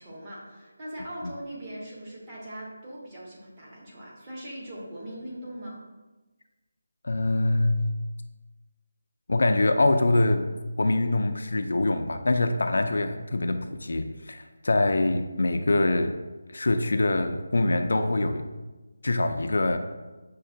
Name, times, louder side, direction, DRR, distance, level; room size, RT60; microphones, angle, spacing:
voice 1, 0.0-5.8, right 1 dB, 20° right, -6 dB, 0.8 m, -40 dB
voice 2, 7.0-7.8 9.3-10.5 10.8-16.2 16.5-18.4 19.0-19.8, left 2 dB, 70° left, 7 dB, 0.3 m, -24 dB
6.1 x 2.1 x 2.6 m, 1.2 s
figure-of-eight pair, 170°, 0 cm